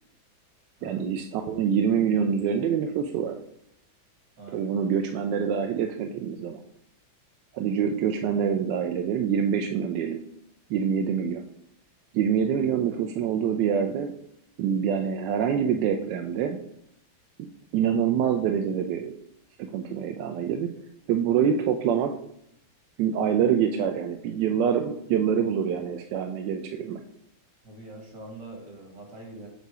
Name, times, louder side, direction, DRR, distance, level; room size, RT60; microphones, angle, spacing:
voice 1, 0.8-3.4 4.5-6.6 7.5-10.2 10.7-11.5 12.1-14.1 14.6-16.6 17.7-19.1 19.7-20.7 21.1-22.1 23.0-27.0, right 8 dB, 75° right, 4 dB, 1.1 m, -25 dB
voice 2, 4.4-4.7 27.6-29.5, right 2 dB, 60° right, 0 dB, 2.3 m, -43 dB
8.0 x 2.8 x 4.7 m, 0.73 s
omnidirectional pair, 2.2 m